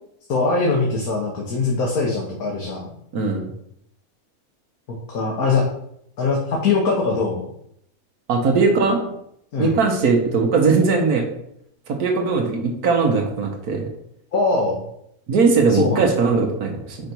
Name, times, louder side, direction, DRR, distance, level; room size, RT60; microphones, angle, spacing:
voice 1, 0.3-2.9 5.1-5.7 6.2-7.4 9.5-9.8 14.3-14.8 15.7-16.1, left 3 dB, 80° left, -2 dB, 1.7 m, -21 dB
voice 2, 3.1-3.5 8.3-9.1 9.6-11.2 11.9-13.8 15.3-17.0, right 4 dB, 90° right, 2 dB, 1.6 m, -19 dB
5.8 x 5.3 x 4.5 m, 0.74 s
omnidirectional pair, 1.5 m